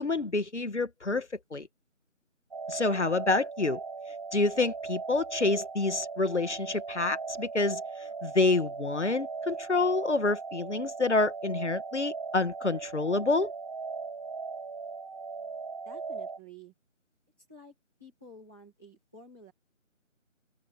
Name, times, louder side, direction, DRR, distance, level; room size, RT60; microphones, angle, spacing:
voice 1, 0.0-1.7 2.7-3.8 4.3-7.8 8.2-13.5, left 3 dB, 60° left, 2.1 m, -28 dB
sound 1, 2.5-16.4, right 4 dB, 30° right, 7.5 m, -39 dB
voice 2, 15.4-16.7 17.5-19.5, right 1 dB, ahead, 1.4 m, -52 dB
figure-of-eight pair, 175°, 40 cm